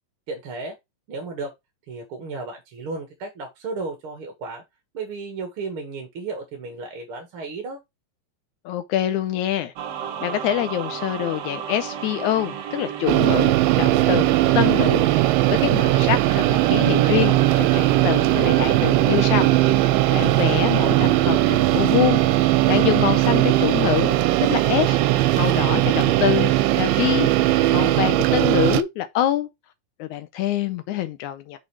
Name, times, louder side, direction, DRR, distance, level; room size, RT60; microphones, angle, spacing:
voice 1, 0.3-0.7 1.1-1.5 1.9-4.6 4.9-7.8, right 3 dB, 45° right, 2.1 m, -33 dB
voice 2, 8.7-9.7 10.2-25.0 25.3-27.3 27.7-29.5 30.0-31.6, left 12 dB, 75° left, 1.9 m, -25 dB
sound 1, 9.8-28.0, right 9 dB, 65° right, 1.8 m, -31 dB
sound 2, 13.1-28.8, right 17 dB, 90° right, 2.3 m, -19 dB
6.4 x 6.2 x 3.2 m
omnidirectional pair, 3.9 m